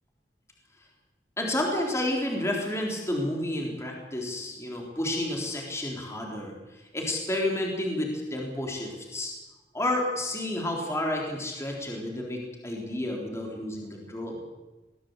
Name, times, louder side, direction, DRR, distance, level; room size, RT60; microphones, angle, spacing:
voice 1, 1.4-9.3 9.7-14.4, left 1 dB, 15° left, 0 dB, 3.9 m, -30 dB
22.5 x 16.5 x 8.2 m, 1.1 s
head